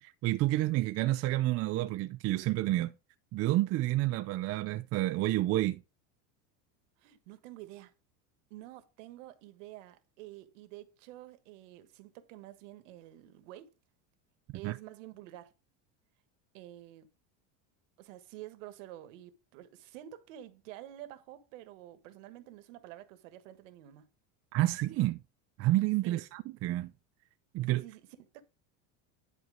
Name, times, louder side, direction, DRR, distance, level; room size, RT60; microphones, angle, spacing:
voice 1, 0.0-2.9 3.3-5.8 14.6-14.8 24.5-25.2 25.6-26.9 27.5-27.8, right 16 dB, 40° right, 0.6 m, -29 dB
voice 2, 7.0-7.9 8.5-13.7 14.5-15.5 16.5-17.1 18.0-24.1 26.0-26.2 27.7-28.4, right 14 dB, 80° right, 1.5 m, -49 dB
11.0 x 4.5 x 4.9 m
supercardioid pair, 140°, 37 cm